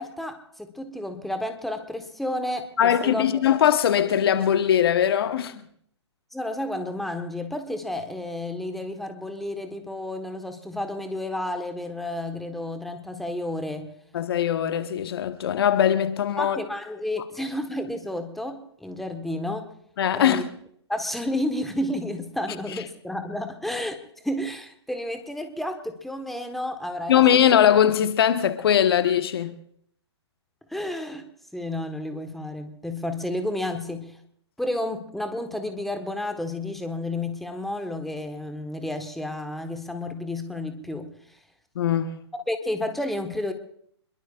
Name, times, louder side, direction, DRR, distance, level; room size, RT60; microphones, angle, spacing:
voice 1, 0.0-3.4 6.3-13.9 16.4-19.7 20.1-20.4 20.9-27.4 30.7-34.2 34.6-41.1 42.5-43.5, left 1 dB, ahead, 1.2 m, -31 dB
voice 2, 2.8-5.6 14.1-16.6 20.0-20.4 27.1-29.5 41.7-42.1, left 9 dB, 55° left, 1.1 m, -21 dB
25.5 x 22.0 x 2.4 m
figure-of-eight pair, 120°, 15 cm